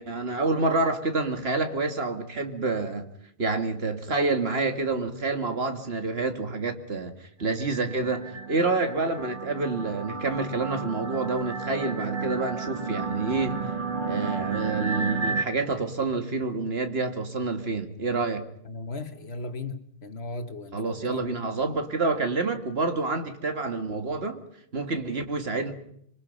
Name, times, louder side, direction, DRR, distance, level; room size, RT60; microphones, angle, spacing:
voice 1, 0.0-3.1 3.4-7.1 7.4-13.7 14.1-18.4 20.7-24.4 24.7-25.7, right 3 dB, 70° right, 2.2 m, -28 dB
sound 1, 7.5-15.4, right 4 dB, 50° right, 2.3 m, -32 dB
voice 2, 18.7-21.5, left 2 dB, 75° left, 1.8 m, -37 dB
26.0 x 24.0 x 5.4 m
omnidirectional pair, 1.1 m